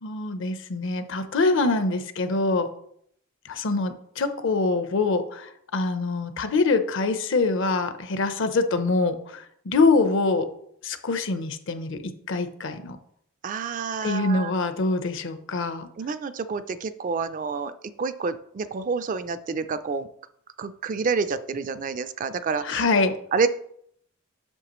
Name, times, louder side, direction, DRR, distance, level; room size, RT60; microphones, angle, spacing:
voice 1, 0.0-2.7 3.4-10.5 10.8-13.0 14.0-15.9 22.6-23.1, left 3 dB, 60° left, 10 dB, 0.7 m, -24 dB
voice 2, 13.4-14.5 16.0-17.7 18.0-20.1 20.6-22.9 23.3-23.5, right 5 dB, 40° right, 12 dB, 0.3 m, -28 dB
7.8 x 6.5 x 3.0 m, 0.69 s
head